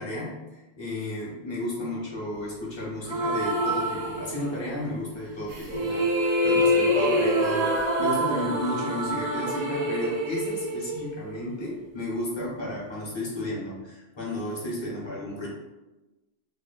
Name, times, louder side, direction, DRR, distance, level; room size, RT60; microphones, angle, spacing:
voice 1, 0.0-15.5, left 1 dB, 30° left, -5 dB, 0.6 m, -33 dB
sound 1, 3.1-4.8 5.5-11.6, equal, 50° right, 0.6 m, -26 dB
2.8 x 2.1 x 2.3 m, 1.1 s
omnidirectional pair, 1.1 m